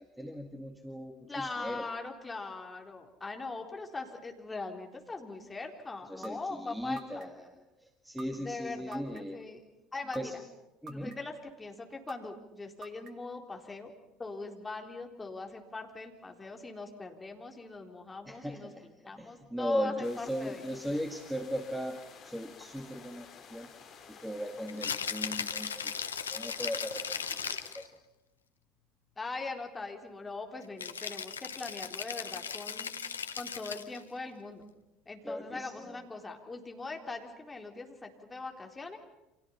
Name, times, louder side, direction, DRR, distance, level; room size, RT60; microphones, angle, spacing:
voice 1, 0.0-1.9 6.1-9.4 10.2-10.3 10.8-11.1 18.2-23.7 24.1-28.0 35.2-36.1, equal, ahead, 5 dB, 2.1 m, -38 dB
voice 2, 1.3-7.3 8.4-9.6 9.9-10.4 10.9-13.9 14.2-20.6 29.2-32.9 33.4-34.6 35.1-39.0, left 3 dB, 20° left, 3 dB, 4.1 m, -41 dB
sound 1, 6.2-6.3 7.0-7.5 8.2-8.3 8.9-9.4 10.1-10.2 10.9-11.4 12.1-12.2 12.8-13.3, right 3 dB, 45° right, 2.5 m, -46 dB
sound 2, 20.0-27.7, left 6 dB, 45° left, 3.9 m, -53 dB
Rattle (instrument), 24.7-27.9 30.8-34.0, left 6 dB, 80° left, 0.9 m, -37 dB
30.0 x 27.0 x 5.8 m, 0.93 s
figure-of-eight pair, 65°, 0 cm